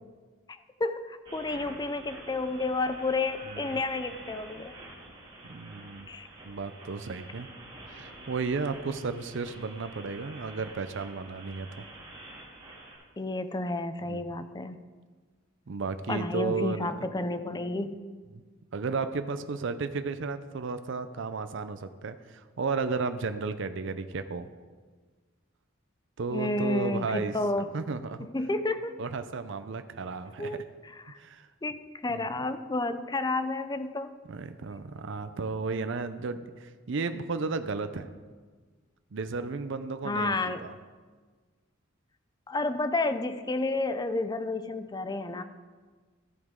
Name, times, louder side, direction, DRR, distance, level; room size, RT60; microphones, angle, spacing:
voice 1, 0.8-4.7 6.1-6.3 13.2-14.8 16.1-18.0 26.3-27.7 28.2-29.0 30.4-31.2 31.6-34.1 40.0-40.7 42.5-45.4, left 2 dB, 20° left, 10 dB, 0.5 m, -31 dB
sound 1, 1.3-13.0, right 2 dB, 25° right, 3.0 m, -48 dB
voice 2, 3.4-3.8 5.4-6.1 6.4-7.5 7.9-11.8 14.0-14.2 15.7-17.0 18.3-18.4 18.7-24.5 26.2-27.4 27.7-28.3 29.0-30.6 31.2-31.5 32.1-32.3 34.3-38.1 39.1-40.7, right 4 dB, 65° right, 10 dB, 0.6 m, -34 dB
14.0 x 7.9 x 3.7 m, 1.4 s
head